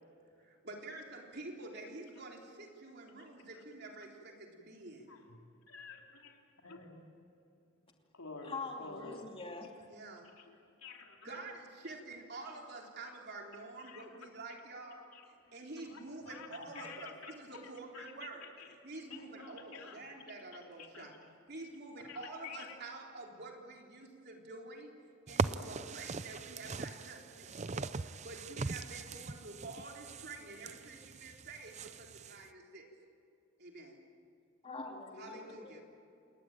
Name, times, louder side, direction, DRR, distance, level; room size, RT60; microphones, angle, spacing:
voice 1, 0.4-5.1 9.9-10.3 11.2-15.0 15.5-18.5 18.8-21.1 21.5-24.9 25.3-32.9 33.6-34.0 35.2-35.8, right 2 dB, 45° right, 3.6 m, -48 dB
voice 2, 3.2-3.6 5.1-5.4 5.7-6.3 6.6-7.1 8.1-9.2 10.2-11.4 13.8-14.2 15.1-15.5 15.9-18.7 19.1-20.0 20.8-21.1 22.0-22.8, left 4 dB, 75° left, 3.5 m, -51 dB
voice 3, 8.4-9.7 34.6-35.8, left 3 dB, 25° left, 2.6 m, -44 dB
sound 1, 25.3-32.4, right 4 dB, 30° right, 0.5 m, -40 dB
29.0 x 20.5 x 9.1 m
head